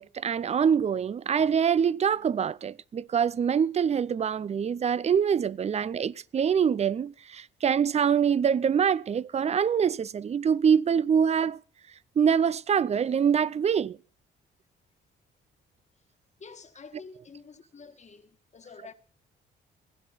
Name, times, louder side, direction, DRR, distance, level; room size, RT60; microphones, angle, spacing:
voice 1, 0.0-11.6 12.2-14.0, right 7 dB, 35° right, 0.5 m, -25 dB
voice 2, 16.4-18.9, left 5 dB, 35° left, 1.5 m, -48 dB
16.0 x 10.5 x 4.0 m
cardioid pair, 90°, 20 cm